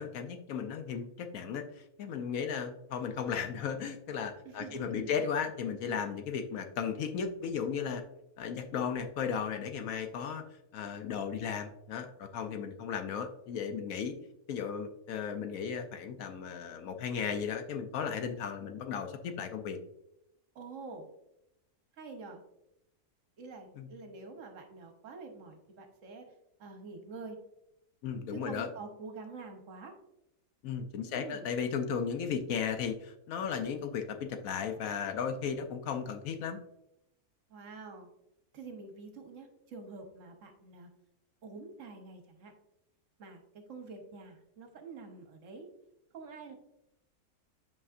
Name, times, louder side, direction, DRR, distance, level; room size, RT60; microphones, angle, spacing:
voice 1, 0.0-8.0 8.4-10.4 10.7-14.1 14.5-19.8 23.8-23.9 28.0-28.7 30.6-36.6, left 7 dB, 70° left, 7 dB, 1.0 m, -35 dB
voice 2, 4.4-5.2 20.5-21.1 22.0-22.4 23.4-26.2 26.6-27.4 28.3-29.9 31.0-31.5 37.5-38.1 38.5-40.9 41.4-42.5 43.2-45.7 46.1-46.6, right 4 dB, 60° right, 4 dB, 1.1 m, -47 dB
8.2 x 4.9 x 2.5 m, 0.84 s
omnidirectional pair, 1.6 m